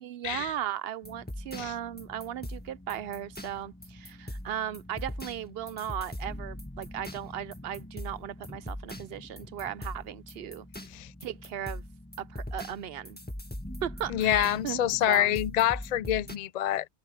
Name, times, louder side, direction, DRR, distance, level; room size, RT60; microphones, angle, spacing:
voice 1, 0.0-10.7 11.2-11.8 12.2-13.2 13.8-14.8 15.1-15.4, right 10 dB, 60° right, 0.8 m, -37 dB
sound 1, 1.0-16.4, left 1 dB, 10° left, 1.6 m, -42 dB
voice 2, 14.1-16.9, left 12 dB, 60° left, 0.4 m, -27 dB
omnidirectional pair, 1.2 m